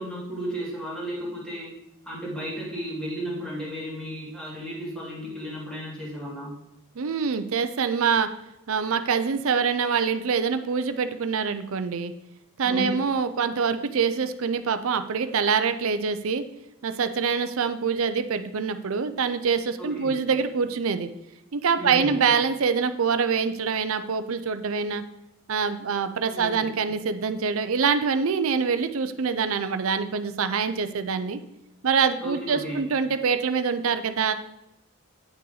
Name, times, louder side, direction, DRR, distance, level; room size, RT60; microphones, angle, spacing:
voice 1, 0.0-1.8 2.0-6.5 12.6-13.0 19.8-20.1 21.8-22.2 26.2-26.7 32.2-32.9, equal, 5° left, -6 dB, 2.4 m, -34 dB
voice 2, 7.0-8.3 8.7-12.1 12.6-16.4 16.8-21.1 21.5-25.0 25.5-31.4 31.8-34.3, right 5 dB, 65° right, 10 dB, 0.5 m, -25 dB
8.7 x 5.7 x 3.9 m, 0.87 s
head